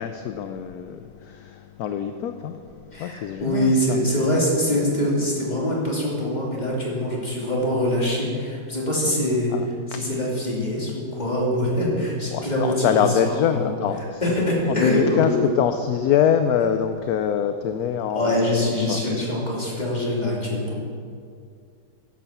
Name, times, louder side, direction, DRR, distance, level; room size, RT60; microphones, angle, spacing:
voice 1, 0.0-2.6 3.0-4.0 9.5-9.6 12.3-14.2 14.7-15.3 15.6-19.0, left 8 dB, 70° left, 8 dB, 1.0 m, -24 dB
voice 2, 2.9-9.5 9.9-13.8 14.2-15.4 18.1-20.8, left 1 dB, 25° left, -4 dB, 2.8 m, -24 dB
10.5 x 8.5 x 7.1 m, 2.2 s
omnidirectional pair, 1.9 m